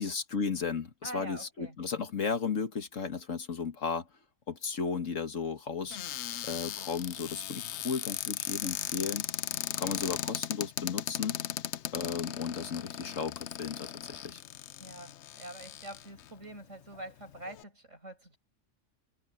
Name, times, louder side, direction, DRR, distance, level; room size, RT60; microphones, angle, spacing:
voice 1, 0.0-4.1 4.5-6.0 6.4-9.3 9.8-11.4 11.9-14.4, left 5 dB, 85° left, 2.1 m, -34 dB
voice 2, 1.0-1.8 14.8-18.4, right 1 dB, 75° right, 6.9 m, -45 dB
Cupboard open or close, 5.9-16.3 16.9-17.0 17.3-17.6, left 11 dB, 70° left, 0.9 m, -37 dB
omnidirectional pair, 1.3 m